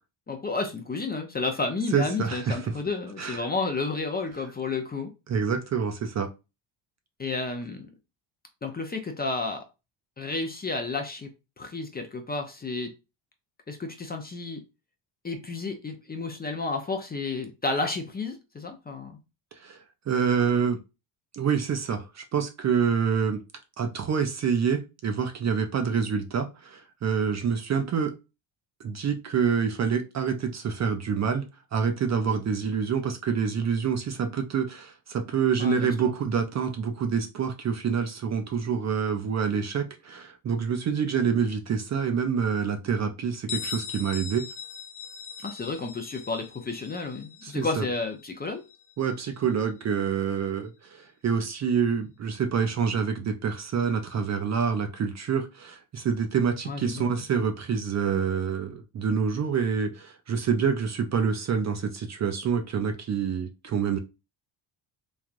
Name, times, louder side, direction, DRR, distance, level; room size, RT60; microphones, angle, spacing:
voice 1, 0.3-5.1 7.2-7.9 8.6-9.7 10.2-12.9 13.7-14.6 15.2-19.2 35.6-36.1 45.4-48.6 56.7-57.2, left 3 dB, 20° left, 0.5 m, -31 dB
voice 2, 1.9-2.7 3.2-3.4 5.3-6.3 19.6-19.8 20.1-20.8 21.3-23.4 23.8-28.2 28.8-31.5 31.7-44.5 47.4-47.9 49.0-64.0, right 6 dB, 35° right, 0.4 m, -27 dB
Bell, 43.5-49.0, left 6 dB, 60° left, 0.8 m, -40 dB
3.2 x 2.3 x 2.4 m
cardioid pair, 90°, 49 cm